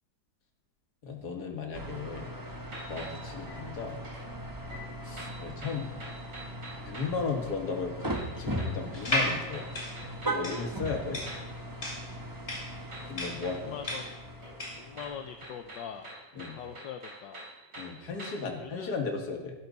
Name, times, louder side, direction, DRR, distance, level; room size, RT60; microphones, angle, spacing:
voice 1, 1.0-2.3 2.9-4.0 5.0-6.0 6.8-9.7 10.2-11.2 13.1-13.8 16.3-16.6 17.8-19.5, left 4 dB, 60° left, 2 dB, 2.3 m, -35 dB
sound 1, 1.7-16.1, right 1 dB, 15° right, 0.7 m, -39 dB
sound 2, 2.7-4.3 4.7-7.2 8.1-11.6 12.9-14.2 14.4-18.6, right 1 dB, 70° right, 4.2 m, -47 dB
sound 3, 8.9-14.9, left 1 dB, 30° left, 3.4 m, -34 dB
voice 2, 13.6-14.1 14.7-16.1 16.5-17.4 18.6-18.9, left 8 dB, 80° left, 6 dB, 1.4 m, -42 dB
13.5 x 11.5 x 4.0 m, 1.1 s
omnidirectional pair, 2.0 m